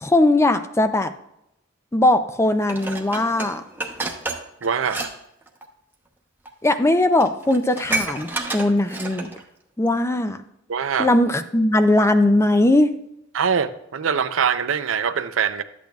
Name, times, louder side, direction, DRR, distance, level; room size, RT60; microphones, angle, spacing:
voice 1, 0.0-1.1 1.9-3.6 6.6-9.3 9.8-10.4 11.0-12.9, left 1 dB, 15° left, 0.5 m, -19 dB
Dishes pots and pans, 2.7-5.1 5.4-5.6 6.5-6.6 6.9-7.0 7.2-9.4 9.9-10.0, right 2 dB, 10° right, 0.9 m, -30 dB
voice 2, 4.6-5.1 10.7-11.1 13.3-15.6, right 7 dB, 85° right, 0.6 m, -23 dB
12.0 x 8.4 x 2.3 m
head